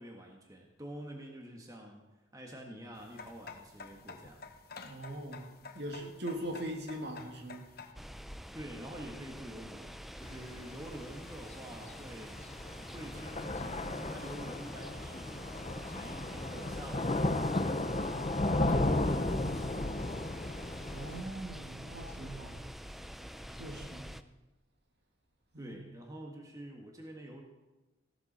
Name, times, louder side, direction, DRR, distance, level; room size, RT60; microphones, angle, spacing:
voice 1, 0.0-2.1 2.3-4.4 8.5-18.2 18.5-20.3 25.6-27.4, right 1 dB, 20° right, 1 dB, 1.6 m, -48 dB
sound 1, 2.9-7.9, left 4 dB, 50° left, 1.0 m, -50 dB
voice 2, 4.8-5.5 5.7-7.7 18.5-19.0 20.9-22.7 23.5-24.1 25.5-25.8, right 1 dB, 55° right, 2 dB, 2.2 m, -41 dB
sound 2, 7.9-24.2, equal, ahead, 0.4 m, -47 dB
Thunder / Rain, 10.2-21.2, left 2 dB, 30° left, 0.7 m, -34 dB
16.5 x 12.5 x 4.3 m, 1.1 s
head